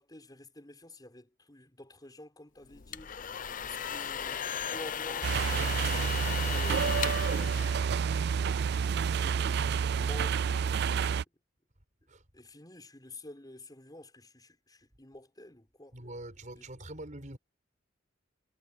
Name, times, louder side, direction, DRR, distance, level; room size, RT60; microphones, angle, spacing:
voice 1, 0.0-5.3 5.9-7.8 9.9-11.3 12.3-16.0 16.5-16.7, left 1 dB, 20° left, 5.5 m, -50 dB
sound 1, 2.7-8.4, left 8 dB, 45° left, 0.7 m, -36 dB
sound 2, 5.2-11.2, right 6 dB, 60° right, 0.4 m, -29 dB
voice 2, 15.9-17.4, right 1 dB, 40° right, 5.7 m, -44 dB
head